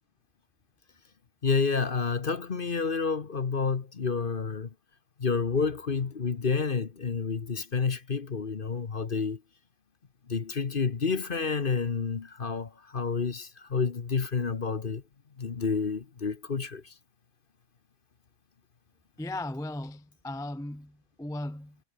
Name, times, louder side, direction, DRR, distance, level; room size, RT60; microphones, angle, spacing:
voice 1, 1.4-4.7 5.2-9.4 10.3-15.0 15.4-16.9, left 5 dB, 35° left, 1.1 m, -29 dB
voice 2, 19.2-21.8, left 1 dB, 5° left, 0.5 m, -37 dB
omnidirectional pair, 1.8 m